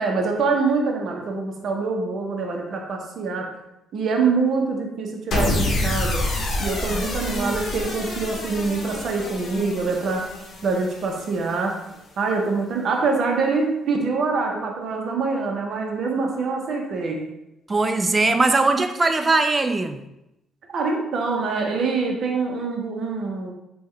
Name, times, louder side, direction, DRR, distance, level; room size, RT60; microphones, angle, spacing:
voice 1, 0.0-3.4 3.9-6.2 6.6-10.2 10.6-11.7 12.2-17.2 18.3-18.4 20.7-23.5, right 4 dB, 60° right, 1 dB, 0.6 m, -25 dB
sound 1, 5.3-11.6, left 2 dB, 60° left, 0.7 m, -27 dB
voice 2, 6.9-7.5 17.7-20.0, right 3 dB, 25° right, 7 dB, 0.3 m, -21 dB
3.5 x 2.2 x 3.2 m, 0.88 s
cardioid pair, 80°, 0 cm